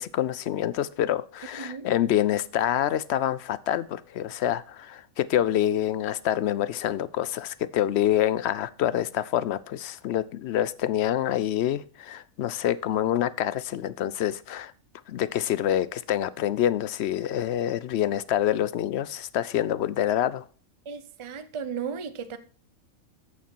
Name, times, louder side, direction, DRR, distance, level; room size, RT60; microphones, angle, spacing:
voice 1, 0.0-14.7 15.1-20.4, left 11 dB, 65° left, 0.7 m, -26 dB
voice 2, 1.6-1.9 20.9-22.4, right 6 dB, 30° right, 0.6 m, -35 dB
8.5 x 7.1 x 4.4 m
omnidirectional pair, 1.4 m